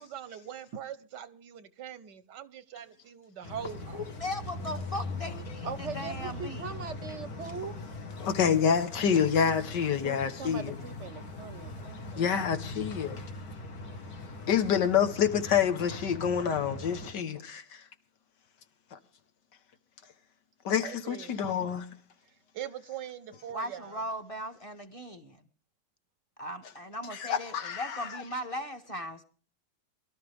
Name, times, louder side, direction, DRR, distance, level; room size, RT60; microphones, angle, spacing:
voice 1, 0.0-4.0 20.8-21.7 22.5-24.0, right 9 dB, 90° right, 1.7 m, -42 dB
sound 1, 3.4-17.1, left 2 dB, 60° left, 2.1 m, -41 dB
voice 2, 3.9-6.7 23.5-25.4 26.4-29.2, left 1 dB, 20° left, 1.4 m, -38 dB
voice 3, 5.6-7.7 10.0-12.4, right 5 dB, 50° right, 1.0 m, -41 dB
voice 4, 8.2-10.8 12.2-13.2 14.5-17.8 18.9-19.0 20.7-21.9 27.1-28.2, left 7 dB, 85° left, 1.9 m, -27 dB
23.0 x 12.5 x 3.5 m
omnidirectional pair, 1.8 m